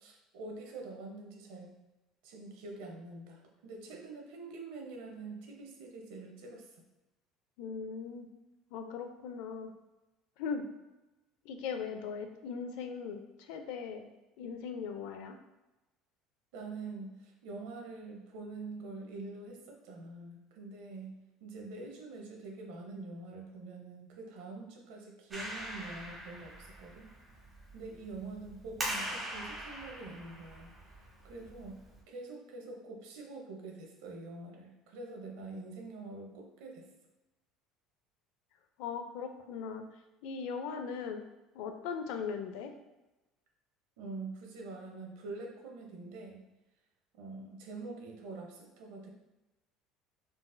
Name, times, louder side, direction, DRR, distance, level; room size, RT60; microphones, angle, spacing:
voice 1, 0.0-1.8 2.2-6.8 16.5-27.1 27.7-30.7 31.0-36.9 44.0-46.5 47.2-49.1, right 3 dB, 85° right, 1 dB, 0.7 m, -45 dB
voice 2, 7.6-8.3 8.7-9.7 10.4-10.7 11.4-14.1 14.4-15.4 38.8-39.9 40.2-41.2 41.5-42.7, left 6 dB, 70° left, 6 dB, 0.3 m, -39 dB
Clapping, 25.3-32.0, right 1 dB, 15° right, 0.7 m, -42 dB
3.9 x 2.5 x 2.2 m, 1.0 s
cardioid pair, 165°, 0 cm